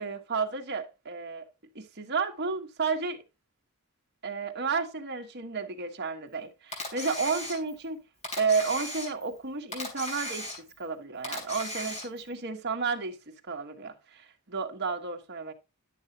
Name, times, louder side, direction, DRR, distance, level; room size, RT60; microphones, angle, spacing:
voice 1, 0.0-1.4 1.7-3.2 4.2-8.0 8.4-15.5, right 4 dB, 50° right, 1.3 m, -32 dB
Camera, 6.7-7.9 8.2-9.4 9.7-10.9 11.2-12.3, left 1 dB, 30° left, 3.2 m, -37 dB
10.5 x 6.8 x 2.8 m
head